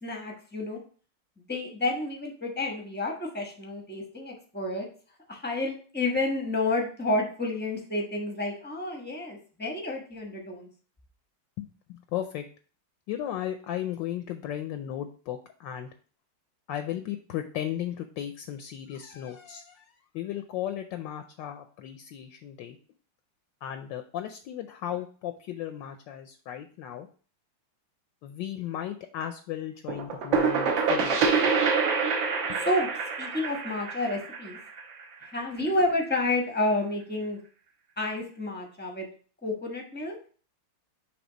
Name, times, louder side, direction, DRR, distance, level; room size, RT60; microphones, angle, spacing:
voice 1, 0.0-0.8 1.4-4.9 5.3-10.7 32.6-32.9 33.2-34.6 35.3-37.4 38.0-39.1 39.4-40.2, left 2 dB, 10° left, 1 dB, 0.5 m, -30 dB
voice 2, 11.6-12.4 13.1-15.9 16.7-22.8 23.6-27.1 28.2-31.3 32.5-32.6, left 11 dB, 75° left, 8 dB, 1.1 m, -35 dB
sound 1, 29.9-35.5, right 5 dB, 65° right, 1.8 m, -26 dB
6.1 x 3.4 x 4.9 m, 0.41 s
omnidirectional pair, 2.3 m